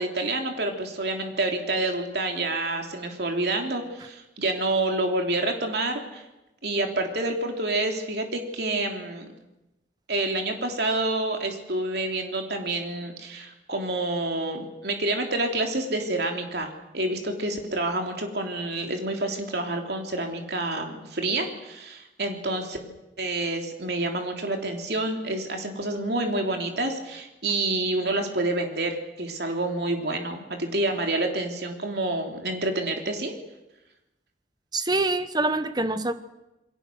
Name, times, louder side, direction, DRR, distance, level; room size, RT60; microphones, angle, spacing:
voice 1, 0.0-6.2 6.6-9.3 10.1-22.8 23.2-33.3, right 2 dB, 60° right, 3 dB, 3.3 m, -28 dB
voice 2, 34.7-36.1, right 2 dB, 20° right, 11 dB, 1.1 m, -25 dB
28.0 x 21.5 x 6.4 m, 0.97 s
head